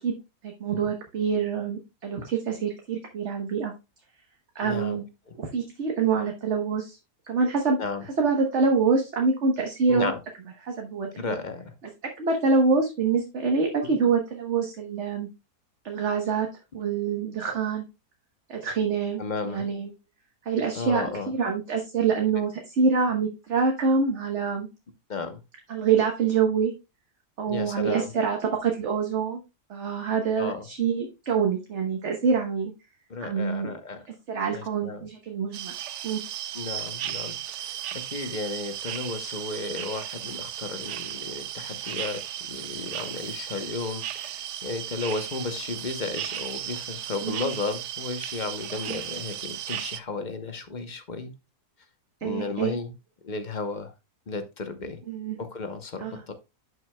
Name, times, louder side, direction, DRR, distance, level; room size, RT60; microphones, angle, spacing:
voice 1, 0.4-3.7 4.5-5.0 5.4-7.0 7.2-7.8 8.2-10.1 10.6-11.3 12.2-15.3 15.8-16.5 16.7-17.8 18.5-19.9 20.4-24.7 25.7-26.7 27.4-29.4 29.7-32.7 33.2-33.7 34.3-35.7 36.0-36.2 47.2-47.4 48.9-49.0 52.2-52.7 55.1-55.4 56.0-56.2, right 5 dB, 50° right, 2 dB, 1.3 m, -26 dB
voice 2, 4.6-5.0 7.8-8.0 9.9-10.2 11.2-11.7 13.8-14.0 19.2-19.6 20.7-21.3 25.1-25.4 27.5-28.1 30.4-30.7 33.1-34.1 34.5-35.1 36.5-42.2 42.5-51.3 52.2-52.9 53.2-53.9 54.3-55.0 55.4-56.3, left 4 dB, 40° left, 9 dB, 0.7 m, -33 dB
sound 1, 35.5-50.0, right 11 dB, 65° right, 0.7 m, -35 dB
10.5 x 6.2 x 2.2 m, 0.26 s
omnidirectional pair, 1.7 m